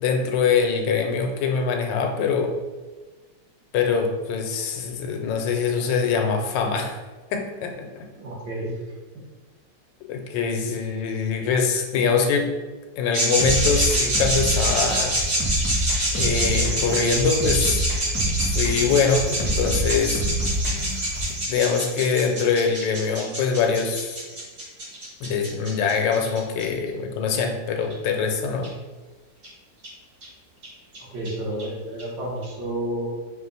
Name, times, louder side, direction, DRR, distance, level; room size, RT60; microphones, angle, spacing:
voice 1, 0.0-2.6 3.7-6.9 7.3-8.0 10.1-12.5 13.0-15.2 16.1-17.8 18.5-20.2 21.5-24.2 25.2-28.7, left 5 dB, 85° left, 4 dB, 1.3 m, -23 dB
voice 2, 8.1-8.7 31.1-33.1, right 1 dB, 70° right, -6 dB, 1.9 m, -30 dB
sound 1, 13.1-26.6 27.9-28.0 28.6-28.7 29.4-29.5 29.8-29.9 30.2-30.3 30.6-30.7 30.9-31.0 31.2-31.3 31.6-31.7 32.0-32.1 32.4-32.5, right 1 dB, 45° right, 1.7 m, -26 dB
sound 2, 13.4-21.4, right 1 dB, 10° right, 0.6 m, -27 dB
4.2 x 2.4 x 4.0 m, 1.3 s
omnidirectional pair, 1.9 m